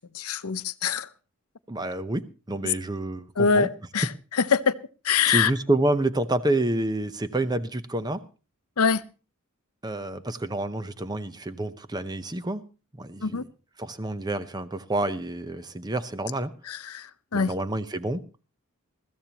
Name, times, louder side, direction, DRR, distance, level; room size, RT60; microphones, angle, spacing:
voice 1, 0.1-1.1 3.4-4.1 4.3-4.7 5.0-5.5 8.8-9.0 13.2-13.4 16.7-17.5, left 6 dB, 85° left, 0.7 m, -24 dB
voice 2, 1.7-3.7 5.3-8.2 9.8-12.6 13.0-13.5 13.8-16.5 17.3-18.2, right 2 dB, 20° right, 0.7 m, -28 dB
21.0 x 14.5 x 2.9 m
head